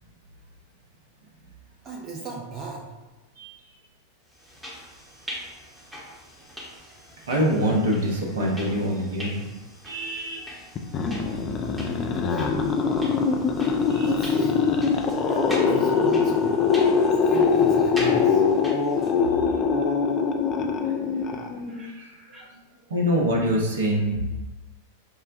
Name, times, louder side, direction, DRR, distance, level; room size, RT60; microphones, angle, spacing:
voice 1, 1.8-2.9 12.2-12.6 14.0-14.7 15.2-16.6 17.1-18.4 19.5-19.6 21.7-22.6, right 4 dB, 25° right, -3 dB, 0.5 m, -36 dB
sound 1, 4.3-19.3, equal, 5° right, 0.9 m, -42 dB
voice 2, 7.3-9.3 9.9-10.6 13.9-14.1 21.8-22.1 22.9-24.2, equal, 65° right, -1 dB, 0.8 m, -25 dB
sound 2, 10.8-21.9, left 5 dB, 30° left, 0.3 m, -22 dB
5.4 x 2.1 x 2.5 m, 1.1 s
figure-of-eight pair, 90°, 0 cm